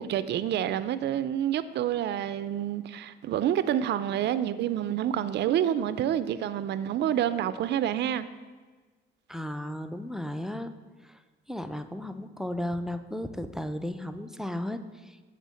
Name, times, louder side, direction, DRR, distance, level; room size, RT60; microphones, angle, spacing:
voice 1, 0.0-8.3, right 10 dB, 60° right, 0.4 m, -28 dB
voice 2, 9.3-10.7 11.0-11.2 11.5-14.8 15.0-15.2, left 1 dB, ahead, 0.4 m, -34 dB
8.1 x 3.7 x 6.3 m
cardioid pair, 90°, 20 cm